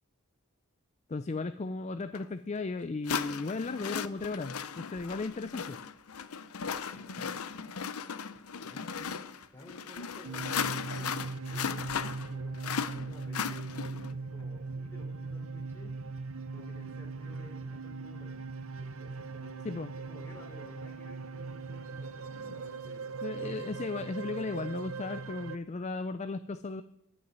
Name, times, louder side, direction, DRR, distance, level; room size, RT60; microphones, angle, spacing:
voice 1, 1.1-5.8 19.6-19.9 22.5-22.6 23.2-26.8, left 3 dB, 30° left, 10 dB, 0.4 m, -36 dB
sound 1, 2.1-2.2 3.0-14.1, left 6 dB, 85° left, 0.7 m, -37 dB
voice 2, 6.9-7.4 8.6-9.2 9.5-15.9 16.5-18.5 18.8-23.7, left 1 dB, 10° left, -1 dB, 3.3 m, -53 dB
sound 2, 10.2-25.6, right 4 dB, 65° right, 0.7 m, -40 dB
11.5 x 6.3 x 9.3 m, 0.76 s
head